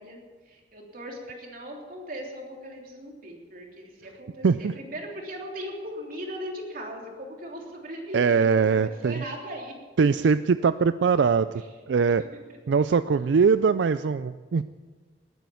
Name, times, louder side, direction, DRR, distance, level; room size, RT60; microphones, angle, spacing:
voice 1, 0.0-9.7 11.6-11.7, equal, 55° right, 0 dB, 3.3 m, -38 dB
voice 2, 8.1-9.2 10.0-11.5 11.9-12.2 12.7-14.7, right 5 dB, 85° right, 13 dB, 0.4 m, -22 dB
20.0 x 9.2 x 7.0 m, 1.4 s
head